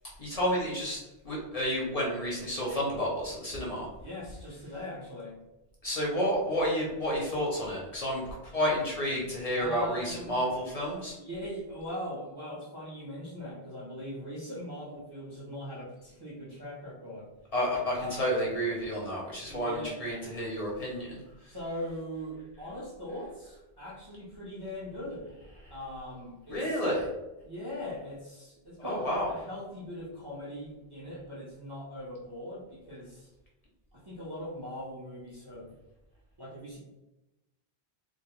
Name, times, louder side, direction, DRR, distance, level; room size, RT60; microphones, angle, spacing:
voice 1, 0.2-1.0 1.2-3.9 5.8-11.1 17.5-21.2 26.5-27.1 28.8-29.3, equal, 45° left, -4 dB, 0.6 m, -30 dB
voice 2, 3.9-5.4 9.6-10.4 11.2-17.3 17.9-18.4 19.5-20.2 21.5-25.4 25.7-26.8 27.4-33.3 33.9-35.8 36.4-36.8, equal, 35° right, -7 dB, 0.4 m, -40 dB
2.2 x 2.0 x 2.9 m, 1.0 s
omnidirectional pair, 1.0 m